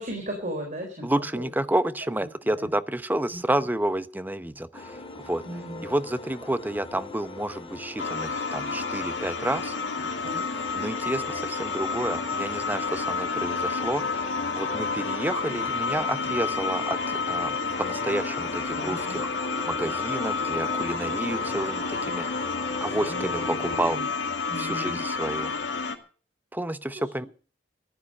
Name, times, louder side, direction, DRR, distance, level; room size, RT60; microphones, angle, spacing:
voice 1, 0.0-1.5 2.5-2.7 3.3-3.4 5.4-5.9 10.0-10.4 15.7-15.8 18.8-19.1 22.9-24.1 24.5-25.0 26.9-27.1, equal, 45° right, 3 dB, 3.9 m, -37 dB
voice 2, 1.0-5.4 5.8-9.7 10.7-14.0 14.5-19.3 19.6-22.3 22.8-24.0 24.6-25.5 26.5-27.3, right 1 dB, 10° right, 14 dB, 0.8 m, -30 dB
sound 1, 4.7-23.8, left 3 dB, 30° left, 2.7 m, -40 dB
sound 2, 8.0-26.0, left 4 dB, 80° left, 2.1 m, -30 dB
14.5 x 11.5 x 6.5 m, 0.39 s
head